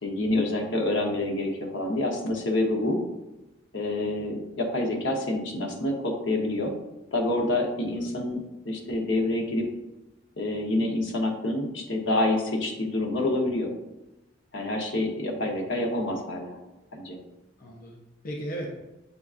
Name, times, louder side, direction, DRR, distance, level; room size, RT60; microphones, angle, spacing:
voice 1, 0.0-3.0 3.7-6.7 7.1-9.7 10.4-13.7 14.5-16.6 16.9-17.2, left 1 dB, 75° left, 1 dB, 0.8 m, -27 dB
voice 2, 17.6-18.8, right 1 dB, 45° left, -1 dB, 0.6 m, -37 dB
6.6 x 2.4 x 2.4 m, 0.99 s
head